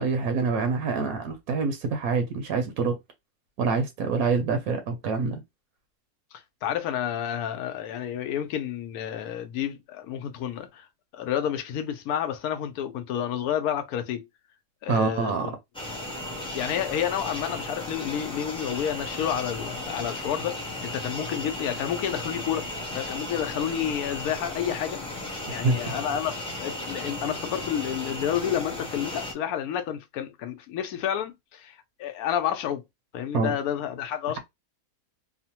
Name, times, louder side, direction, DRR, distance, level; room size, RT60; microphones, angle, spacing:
voice 1, 0.0-3.0 3.6-5.4 14.9-15.5 25.6-25.8 33.3-33.5, right 4 dB, 80° right, 1.1 m, -26 dB
voice 2, 6.6-10.9 11.1-14.3 14.8-15.6 16.5-20.5 20.8-22.6 22.9-25.0 25.5-31.7 32.0-32.8 33.1-34.4, left 9 dB, 80° left, 1.1 m, -30 dB
sound 1, 15.7-29.3, left 1 dB, 10° left, 0.3 m, -35 dB
2.9 x 2.1 x 2.8 m
omnidirectional pair, 1.5 m